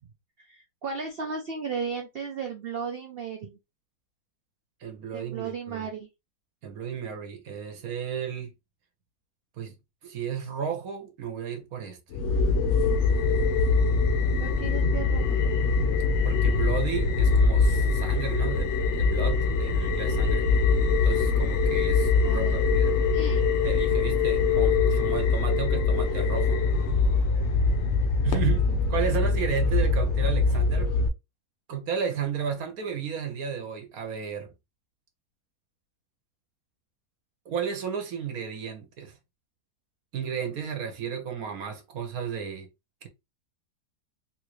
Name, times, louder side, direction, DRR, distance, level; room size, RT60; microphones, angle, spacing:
voice 1, 0.4-3.6 5.1-6.1 14.4-15.4 22.2-22.6 23.1-23.4 28.7-28.9, right 5 dB, 90° right, 0.5 m, -35 dB
voice 2, 4.8-5.9 6.6-8.5 9.6-9.7 10.0-12.0 16.2-20.5 21.0-22.9 23.6-26.6 28.2-30.9 31.7-34.5 37.5-39.2 40.1-42.7, right 7 dB, 65° right, 1.2 m, -33 dB
sound 1, 12.1-31.1, left 4 dB, 60° left, 0.8 m, -23 dB
3.6 x 2.5 x 3.0 m
omnidirectional pair, 1.8 m